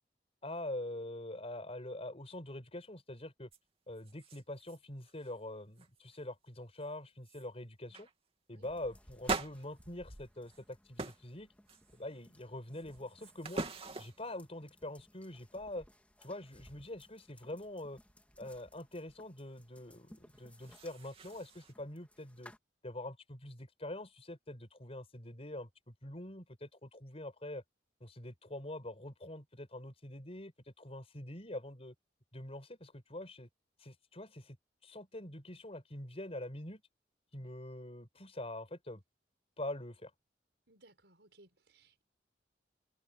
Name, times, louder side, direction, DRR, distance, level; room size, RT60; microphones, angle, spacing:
voice 1, 0.4-3.5 3.9-8.1 8.5-11.5 11.9-13.7 14.0-15.8 16.2-18.0 18.4-22.5 22.8-27.6 28.0-30.5 30.8-31.9 32.3-33.5 33.8-34.6 34.8-36.8 37.3-39.0 39.6-40.1, left 1 dB, 35° left, 5.0 m, -44 dB
sound 1, 3.5-3.6 4.0-4.8 5.0-5.4 5.8-6.2 6.8-6.9 7.2-7.5 7.9-8.1 9.2-10.6 11.0-11.3 11.7-12.2 12.7-14.3 20.3-21.7, right 3 dB, 35° right, 2.8 m, -42 dB
sound 2, 8.6-22.6, left 1 dB, 10° left, 3.5 m, -62 dB
voice 2, 40.7-42.0, right 2 dB, 75° right, 6.3 m, -64 dB
open air
head